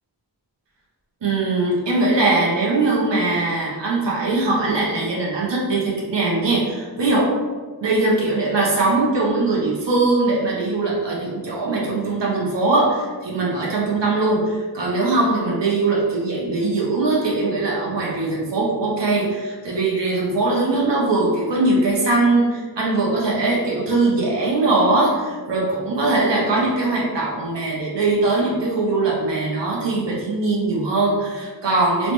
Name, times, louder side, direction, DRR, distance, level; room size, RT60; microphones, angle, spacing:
voice 1, 1.2-7.4 7.8-32.1, right 2 dB, 90° right, -4 dB, 0.7 m, -21 dB
3.1 x 2.1 x 2.9 m, 1.4 s
wide cardioid pair, 45°, 41 cm